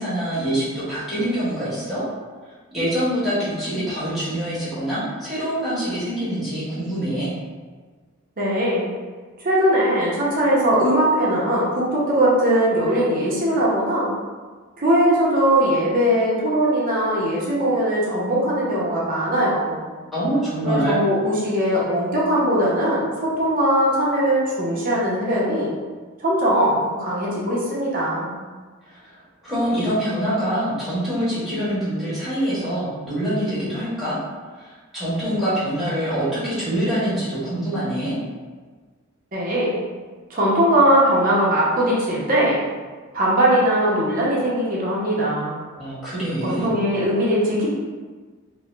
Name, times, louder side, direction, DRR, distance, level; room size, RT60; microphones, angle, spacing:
voice 1, 0.0-2.0 2.7-7.3 20.1-21.0 28.9-29.1 29.4-34.2 34.6-38.2 45.8-46.7, equal, ahead, -12 dB, 1.3 m, -25 dB
voice 2, 8.4-8.9 9.4-14.1 14.8-19.8 20.6-25.7 26.2-28.3 39.3-39.7 40.3-42.6 43.1-45.6 46.4-47.7, right 1 dB, 40° right, -6 dB, 0.8 m, -20 dB
3.4 x 2.1 x 3.2 m, 1.4 s
head